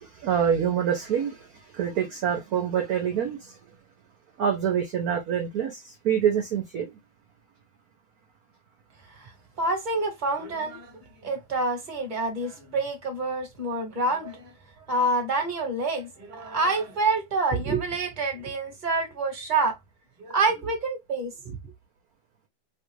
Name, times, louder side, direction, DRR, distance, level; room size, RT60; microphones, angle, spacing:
voice 1, 0.0-1.5 1.7-3.6 4.4-6.9, right 8 dB, 60° right, 1.0 m, -26 dB
voice 2, 9.6-14.5 14.9-19.8 20.2-21.5, right 3 dB, 25° right, 1.3 m, -27 dB
3.5 x 2.4 x 3.0 m
omnidirectional pair, 2.2 m